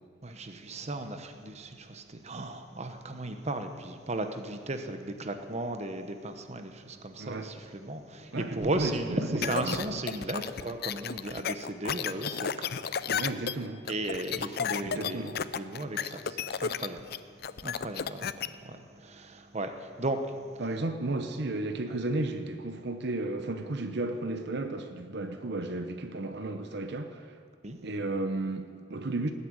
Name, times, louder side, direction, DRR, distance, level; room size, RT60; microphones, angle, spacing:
voice 1, 0.2-12.5 13.9-15.3 15.6-17.0 17.6-20.2 27.6-27.8, right 2 dB, 35° right, 7 dB, 1.0 m, -35 dB
voice 2, 7.2-7.5 8.3-9.8 13.1-13.8 14.8-15.4 20.6-27.2 27.8-29.3, right 2 dB, 60° right, 7 dB, 0.9 m, -33 dB
sound 1, 9.4-18.5, left 7 dB, 55° left, 0.5 m, -33 dB
19.5 x 8.6 x 8.8 m, 2.1 s
head